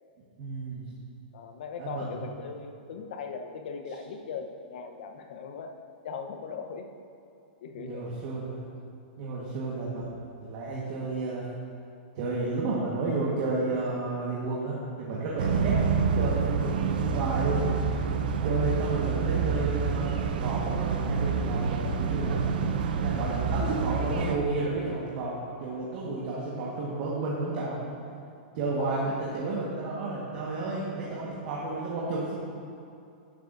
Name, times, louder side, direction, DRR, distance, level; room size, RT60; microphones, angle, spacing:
voice 1, 0.4-0.9 1.8-2.2 7.8-8.6 9.2-10.0 10.4-11.4 12.1-15.7 16.1-18.0 18.4-22.4 23.0-27.8 28.5-32.3, right 3 dB, 40° right, -6 dB, 1.5 m, -31 dB
voice 2, 1.3-5.8 6.0-6.9 7.6-8.1 18.5-18.7 28.8-29.3, left 5 dB, 65° left, 5 dB, 0.9 m, -39 dB
sound 1, 15.4-24.4, right 5 dB, 65° right, 0.7 m, -27 dB
12.0 x 10.0 x 2.6 m, 2.6 s
supercardioid pair, 165°, 5 cm